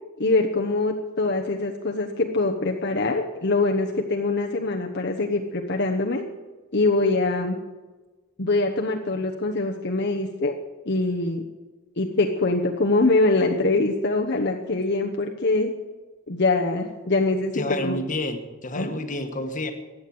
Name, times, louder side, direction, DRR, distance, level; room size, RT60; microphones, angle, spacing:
voice 1, 0.2-6.2 6.7-7.6 8.4-10.5 10.9-11.4 12.0-15.7 16.3-17.9 18.8-18.9, left 2 dB, 55° left, 1 dB, 1.1 m, -23 dB
voice 2, 17.5-19.7, left 1 dB, 35° left, 6 dB, 1.5 m, -29 dB
15.5 x 10.0 x 7.8 m, 1.3 s
head